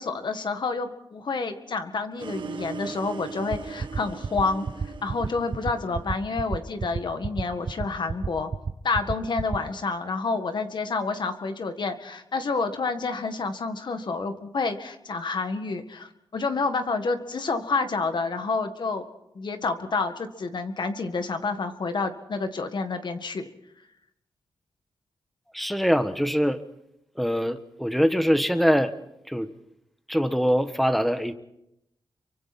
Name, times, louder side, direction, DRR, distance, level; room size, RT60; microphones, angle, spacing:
voice 1, 0.0-8.5 8.8-19.0 19.3-23.5, left 4 dB, 60° left, 8 dB, 1.8 m, -29 dB
sound 1, 2.2-6.3, right 5 dB, 65° right, 1.6 m, -39 dB
sound 2, 3.5-9.6, right 5 dB, 50° right, 1.1 m, -29 dB
voice 2, 25.5-26.6 27.1-29.0 29.3-29.5 30.1-31.3, equal, ahead, 10 dB, 1.3 m, -23 dB
27.5 x 24.0 x 4.3 m, 0.84 s
wide cardioid pair, 90°, 9 cm